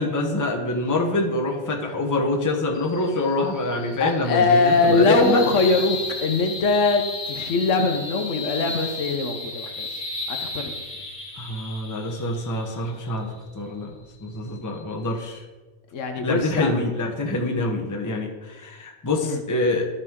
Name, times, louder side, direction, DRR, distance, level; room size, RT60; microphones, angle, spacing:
voice 1, 0.0-5.5 11.4-13.9 14.2-15.4 16.2-19.9, left 2 dB, 15° left, 1 dB, 0.8 m, -25 dB
sound 1, 2.7-15.4, left 3 dB, 55° left, 1.4 m, -35 dB
voice 2, 4.0-9.9 10.3-10.7 15.9-16.7 19.2-19.4, left 3 dB, 70° left, 6 dB, 1.2 m, -22 dB
12.0 x 5.4 x 3.6 m, 1.2 s
omnidirectional pair, 1.3 m